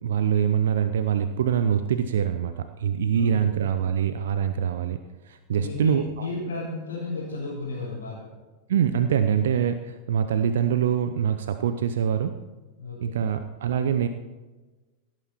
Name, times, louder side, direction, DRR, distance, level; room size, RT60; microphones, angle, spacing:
voice 1, 0.0-5.0 5.3-6.3 8.7-12.3 13.0-14.1, right 8 dB, 60° right, 10 dB, 0.6 m, -24 dB
voice 2, 3.1-3.5 5.5-8.3 12.8-13.3, left 3 dB, 70° left, -9 dB, 4.3 m, -33 dB
17.0 x 9.1 x 4.3 m, 1.2 s
figure-of-eight pair, 90°, 0 cm